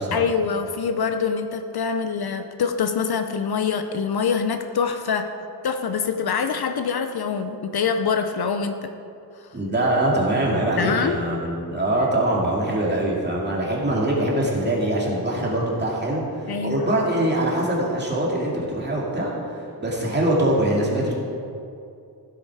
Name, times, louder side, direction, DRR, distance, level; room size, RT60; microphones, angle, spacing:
voice 1, 0.1-5.3 5.6-8.9 10.8-11.2 16.5-16.9, left 6 dB, 60° left, 8 dB, 0.7 m, -25 dB
voice 2, 9.5-21.1, right 1 dB, 25° right, -4 dB, 2.3 m, -23 dB
15.0 x 8.2 x 4.8 m, 2.5 s
wide cardioid pair, 155°, 42 cm